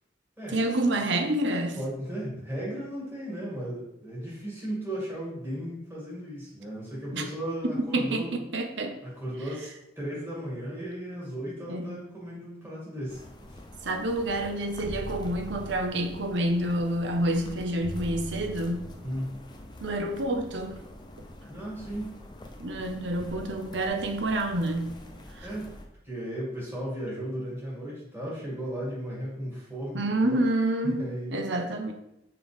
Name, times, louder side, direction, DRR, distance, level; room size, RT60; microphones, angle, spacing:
voice 1, 0.5-1.8 7.1-7.2 7.6-9.0 11.7-12.1 13.8-18.8 19.8-20.8 22.6-25.0 25.3-25.5 29.9-31.9, right 1 dB, 75° right, 5 dB, 0.8 m, -28 dB
voice 2, 1.8-8.4 9.0-13.2 13.5-13.6 19.0-19.4 21.5-22.1 25.4-25.7 26.0-30.4 30.8-31.4, equal, 15° right, -7 dB, 2.3 m, -35 dB
sound 1, 13.1-25.9, left 1 dB, 25° left, 0.6 m, -46 dB
sound 2, 14.8-16.3 17.8-19.3, right 1 dB, 30° right, 0.5 m, -39 dB
5.8 x 4.8 x 3.5 m, 0.87 s
head